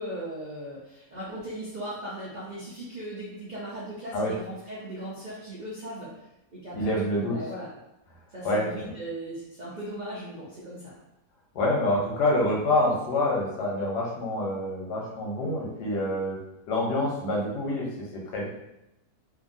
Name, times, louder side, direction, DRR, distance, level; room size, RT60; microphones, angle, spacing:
voice 1, 0.0-6.1 6.5-7.7 8.3-10.9, right 1 dB, 80° right, -7 dB, 0.4 m, -38 dB
voice 2, 6.7-7.4 8.4-8.9 11.5-16.4 16.7-18.5, left 1 dB, 85° left, -2 dB, 1.3 m, -27 dB
2.8 x 2.6 x 2.6 m, 0.88 s
omnidirectional pair, 1.7 m